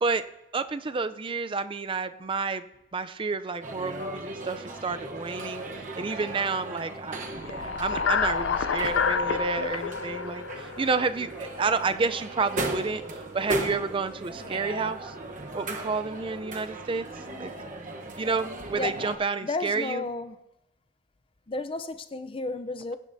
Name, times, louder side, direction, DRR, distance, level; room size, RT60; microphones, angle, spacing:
voice 1, 0.5-2.6 2.9-5.6 6.0-13.0 13.3-15.1 15.5-17.1 17.4-17.5 18.2-20.0, right 4 dB, 30° right, 0.4 m, -30 dB
sound 1, 3.6-19.2, right 2 dB, 45° right, 1.0 m, -37 dB
sound 2, 7.3-11.6, left 5 dB, 85° left, 0.5 m, -28 dB
voice 2, 19.4-20.4 21.5-23.0, left 3 dB, 30° left, 0.5 m, -32 dB
16.5 x 9.9 x 2.7 m
head